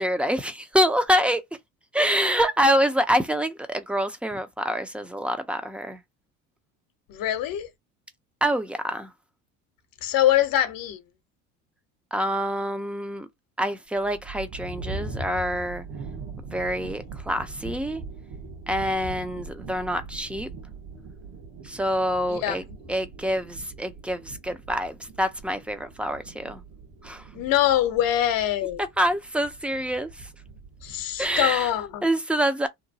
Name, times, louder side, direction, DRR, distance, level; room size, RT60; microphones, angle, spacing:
voice 1, 0.0-1.4 1.9-6.0 8.4-9.1 12.1-13.3 13.6-15.8 16.4-18.0 18.7-20.5 21.6-22.6 22.9-26.6 27.0-27.3 29.0-30.3 31.2-31.7 32.0-32.7, equal, 5° right, 0.6 m, -26 dB
voice 2, 7.1-7.7 10.0-11.0 22.3-22.8 27.3-28.8 30.8-32.1, left 12 dB, 55° left, 0.9 m, -24 dB
sound 1, 13.9-31.9, right 3 dB, 55° right, 1.2 m, -41 dB
2.9 x 2.2 x 2.7 m
hypercardioid pair, 75°, 41 cm